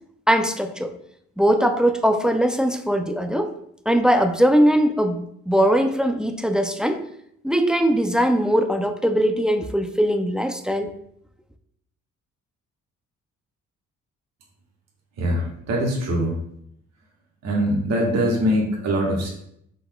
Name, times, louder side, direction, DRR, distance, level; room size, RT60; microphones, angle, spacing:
voice 1, 0.3-0.9 1.4-3.5 3.9-7.0 7.4-10.9, equal, 5° right, 7 dB, 0.3 m, -20 dB
voice 2, 15.2-16.4 17.4-19.3, equal, 60° right, -1 dB, 1.3 m, -22 dB
5.4 x 3.9 x 2.3 m, 0.72 s
cardioid pair, 90°, 30 cm